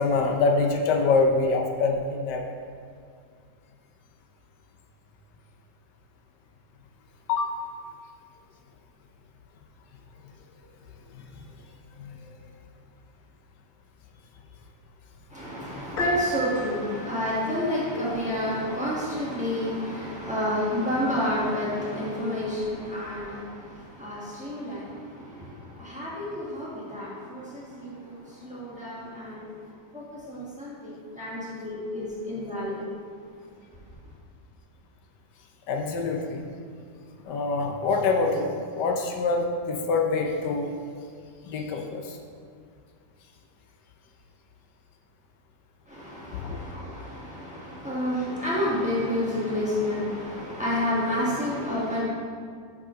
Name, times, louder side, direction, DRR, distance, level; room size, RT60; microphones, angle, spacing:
voice 1, 0.0-2.4 7.3-7.5 11.1-11.3 12.0-12.4 35.7-36.4 37.2-40.7 41.4-42.2 46.3-46.6, left 3 dB, 80° left, 2 dB, 1.3 m, -25 dB
voice 2, 15.3-24.8 25.1-25.5 25.8-29.4 29.9-32.8 45.9-52.0, left 1 dB, 5° right, -7 dB, 1.2 m, -30 dB
Piano, 16.0-17.2, left 2 dB, 60° left, 0.5 m, -31 dB
5.6 x 4.9 x 5.1 m, 2.1 s
omnidirectional pair, 1.8 m